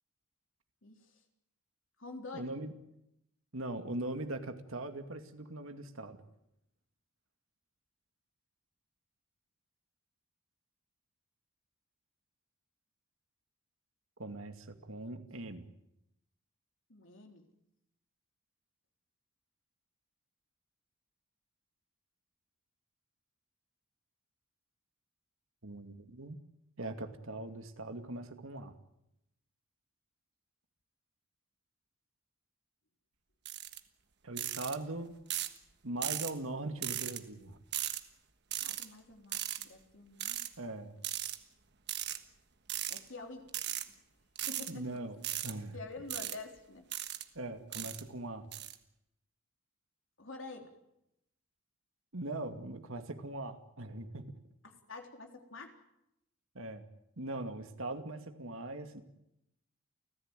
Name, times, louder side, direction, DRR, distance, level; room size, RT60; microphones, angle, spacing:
voice 1, 0.8-1.2 2.0-2.5 16.9-17.5 38.6-40.4 42.9-43.5 43.9-44.0 44.5-45.0 45.7-46.9 47.8-47.9 50.2-50.7 54.6-55.8, left 3 dB, 60° left, 3 dB, 3.8 m, -47 dB
voice 2, 2.3-2.7 3.5-6.2 14.2-15.7 25.6-26.4 26.8-28.8 34.2-35.1 35.8-37.6 40.6-41.0 44.7-45.2 45.4-45.8 47.3-48.5 52.1-54.3 56.5-56.8 57.2-59.0, right 2 dB, 70° right, 6 dB, 2.4 m, -41 dB
sound 1, 33.5-33.8 34.4-34.8 35.3-35.6 36.0-36.3 36.8-37.2 37.7-38.0 38.5-38.9 39.3-39.6 40.2-40.5 41.0-41.4 41.9-42.2 42.7-43.0 43.5-43.8 44.4-44.7 45.2-45.5 46.1-46.4 46.9-47.2 47.7-48.0 48.5-48.7, right 12 dB, 50° right, 1.5 m, -37 dB
30.0 x 15.0 x 9.1 m, 0.85 s
head